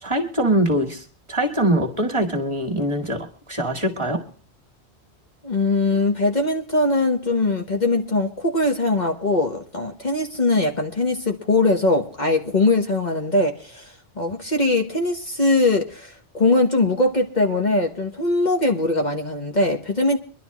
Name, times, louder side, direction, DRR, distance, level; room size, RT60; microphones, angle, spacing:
voice 1, 0.0-4.2, right 1 dB, 25° right, 2 dB, 2.0 m, -23 dB
voice 2, 5.4-13.9 14.2-20.2, left 2 dB, 45° left, 2 dB, 1.4 m, -21 dB
24.0 x 11.5 x 3.1 m, 0.40 s
omnidirectional pair, 1.1 m